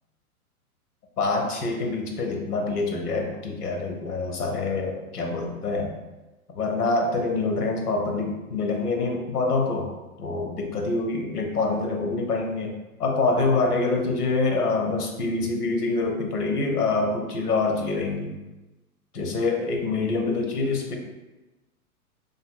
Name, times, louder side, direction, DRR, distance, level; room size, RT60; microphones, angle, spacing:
voice 1, 1.2-6.0 6.6-9.9 10.2-18.3 19.1-21.0, left 3 dB, 80° left, 2 dB, 0.7 m, -26 dB
2.5 x 2.5 x 2.4 m, 1.1 s
figure-of-eight pair, 115°, 45 cm